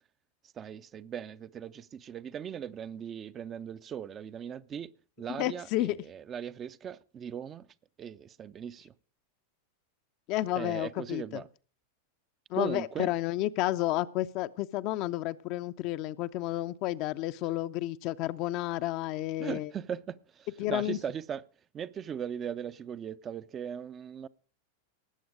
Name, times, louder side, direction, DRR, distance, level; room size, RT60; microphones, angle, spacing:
voice 1, 0.6-4.9 5.2-7.7 8.0-8.9 10.6-11.5 12.5-13.1 19.4-21.4 21.7-24.3, right 8 dB, 25° right, 0.6 m, -39 dB
voice 2, 5.4-6.0 10.3-11.4 12.5-19.7 20.6-21.0, left 15 dB, 40° left, 0.6 m, -31 dB
18.5 x 7.8 x 5.0 m
figure-of-eight pair, 90°, 0 cm